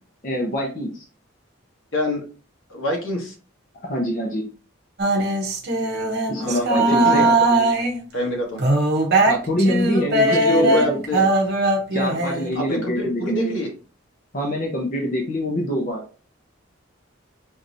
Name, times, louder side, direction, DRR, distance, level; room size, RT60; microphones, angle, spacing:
voice 1, 0.2-1.0 3.8-4.5 6.3-7.3 9.3-11.0 11.9-13.6 14.3-16.0, equal, 40° left, -1 dB, 0.8 m, -25 dB
voice 2, 1.9-2.2 2.7-3.3 6.4-7.7 8.1-8.6 10.2-11.3 12.5-13.7, left 1 dB, 75° left, 0 dB, 1.5 m, -26 dB
sound 1, 5.0-8.0 8.6-12.5, right 2 dB, 50° right, 0.8 m, -20 dB
5.2 x 2.9 x 2.6 m, 0.37 s
head